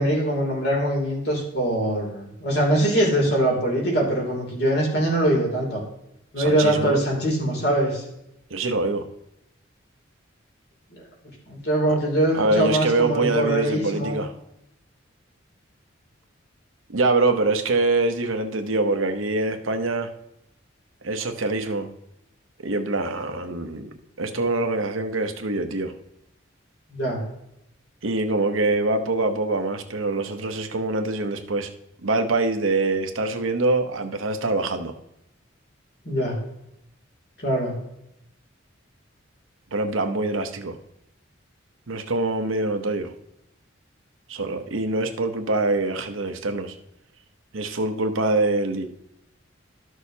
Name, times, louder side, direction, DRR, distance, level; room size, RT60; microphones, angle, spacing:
voice 1, 0.0-5.8 6.3-8.0 10.9-11.0 11.5-14.2 26.9-27.2 36.0-36.4 37.4-37.7, right 1 dB, 55° left, -1 dB, 2.8 m, -23 dB
voice 2, 6.4-7.0 8.5-9.0 12.3-14.3 16.9-20.1 21.0-21.9 22.6-25.9 28.0-31.7 32.0-34.9 39.7-40.8 41.9-43.1 44.3-46.7 47.5-48.9, right 2 dB, 90° right, 6 dB, 0.9 m, -24 dB
13.0 x 6.3 x 2.8 m, 0.84 s
head